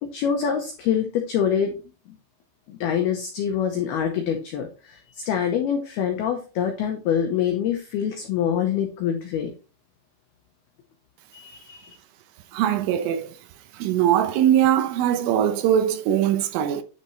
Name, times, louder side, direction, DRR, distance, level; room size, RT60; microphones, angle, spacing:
voice 1, 0.0-1.7 2.7-9.5 11.3-12.0, left 8 dB, 90° left, 2.2 m, -25 dB
voice 2, 12.5-13.3 13.8-16.8, right 10 dB, 80° right, 3.2 m, -21 dB
10.5 x 5.6 x 3.2 m
omnidirectional pair, 5.9 m